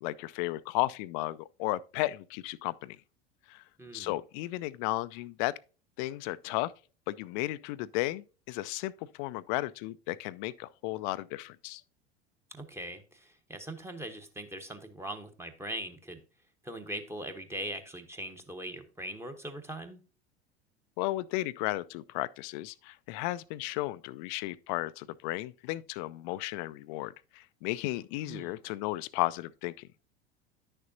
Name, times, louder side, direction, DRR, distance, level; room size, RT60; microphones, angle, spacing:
voice 1, 0.0-3.0 3.5-3.6 3.9-5.5 6.0-6.7 7.1-8.9 9.2-11.8 21.0-29.9, left 18 dB, 50° left, 0.4 m, -34 dB
voice 2, 3.8-4.1 12.5-16.2 16.6-20.0 28.3-28.6, right 1 dB, 10° right, 1.1 m, -41 dB
10.0 x 6.7 x 2.6 m
figure-of-eight pair, 75°, 32 cm